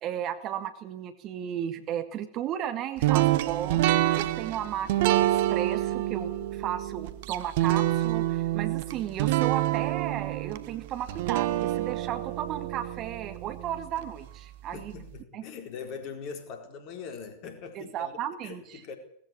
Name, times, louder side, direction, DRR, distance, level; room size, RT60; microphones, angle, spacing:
voice 1, 0.0-15.0 15.3-15.4 17.8-18.8, right 10 dB, 35° right, 10 dB, 1.9 m, -34 dB
sound 1, 3.0-14.1, right 15 dB, 50° right, 1.1 m, -27 dB
voice 2, 14.7-18.1 18.4-19.0, left 6 dB, 40° left, 6 dB, 4.5 m, -41 dB
19.0 x 15.0 x 9.8 m, 0.68 s
figure-of-eight pair, 90°, 0 cm